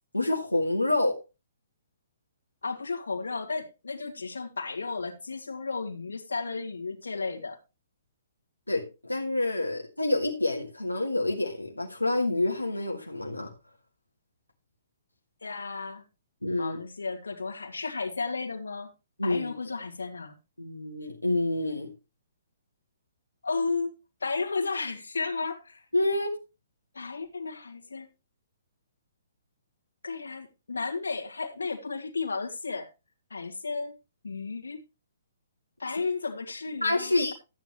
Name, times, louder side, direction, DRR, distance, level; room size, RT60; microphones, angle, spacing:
voice 1, 0.1-1.2 8.7-13.5 16.4-16.8 19.2-19.5 20.6-21.9 25.9-26.3 36.8-37.3, left 2 dB, 85° left, 1.7 m, -27 dB
voice 2, 2.6-7.6 15.4-16.0 16.6-18.9 19.2-20.3 23.4-23.9 24.2-25.8 26.9-28.1 30.0-32.9 33.3-33.9 34.2-34.8 35.8-37.3, left 4 dB, 70° left, 2.2 m, -33 dB
13.5 x 9.1 x 3.1 m
figure-of-eight pair, 125°, 0 cm